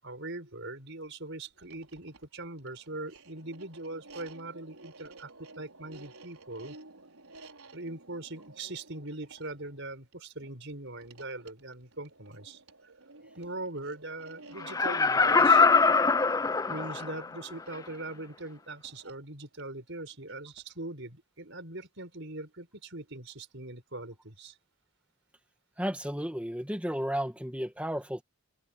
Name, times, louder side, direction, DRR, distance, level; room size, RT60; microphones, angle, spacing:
voice 1, 0.0-6.8 7.7-12.6 13.4-15.7 16.7-24.6, right 2 dB, 55° right, 6.5 m, -41 dB
sound 1, 1.5-20.8, right 3 dB, 75° right, 5.2 m, -54 dB
Laughter, 14.6-17.3 17.7-17.8, left 4 dB, 15° left, 0.4 m, -23 dB
voice 2, 25.8-28.2, equal, 5° right, 1.9 m, -33 dB
open air
head